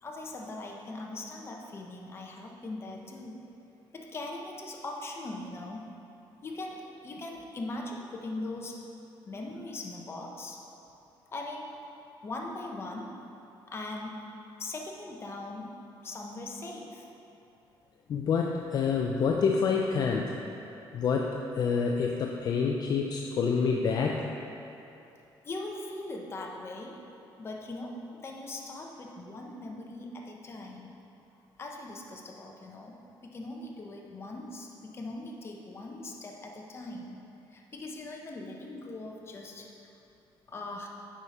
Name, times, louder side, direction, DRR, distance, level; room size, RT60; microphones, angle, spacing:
voice 1, 0.0-3.4 3.9-5.9 6.4-8.8 9.2-10.6 11.3-11.8 12.2-13.1 13.7-14.2 14.6-15.8 16.0-17.1 25.4-27.0 27.4-30.9 31.6-32.9 33.2-37.2 37.5-39.7 40.5-40.9, left 2 dB, 30° left, 0 dB, 0.9 m, -40 dB
voice 2, 18.1-20.3 20.9-24.3, left 5 dB, 50° left, 1 dB, 0.4 m, -27 dB
8.9 x 5.0 x 4.2 m, 2.9 s
cardioid pair, 135°, 9 cm